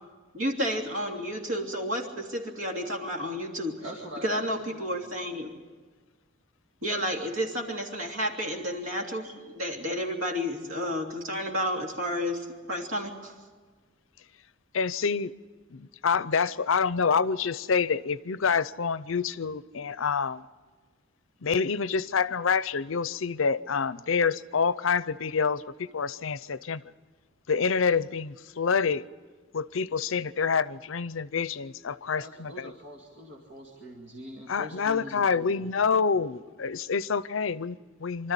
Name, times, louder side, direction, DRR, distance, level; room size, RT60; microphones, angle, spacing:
voice 1, 0.3-3.7 4.2-5.5 6.8-13.3, equal, 90° right, 1 dB, 3.0 m, -31 dB
voice 2, 3.8-4.9 32.2-35.5, equal, 60° right, -1 dB, 2.3 m, -43 dB
voice 3, 14.7-15.3 15.7-20.4 21.4-26.8 27.5-29.0 29.5-32.7 34.5-38.3, left 5 dB, 75° left, 17 dB, 0.6 m, -27 dB
25.0 x 13.0 x 9.9 m, 1.5 s
head